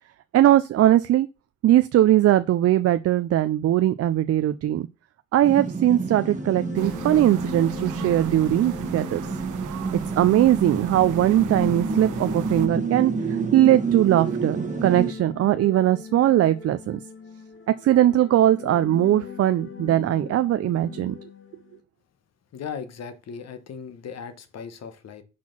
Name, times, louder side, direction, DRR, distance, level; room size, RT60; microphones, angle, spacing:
voice 1, 0.3-1.3 1.6-4.9 5.3-9.2 9.9-17.0 17.8-21.2, right 13 dB, 55° right, 0.5 m, -20 dB
sound 1, 5.4-15.1, right 4 dB, 25° right, 1.1 m, -29 dB
sound 2, 6.1-21.8, left 6 dB, 40° left, 1.6 m, -41 dB
sound 3, 6.7-12.7, right 10 dB, 85° right, 0.8 m, -40 dB
voice 2, 22.5-25.2, left 6 dB, 55° left, 1.2 m, -37 dB
5.9 x 4.4 x 6.0 m
cardioid pair, 90°, 30 cm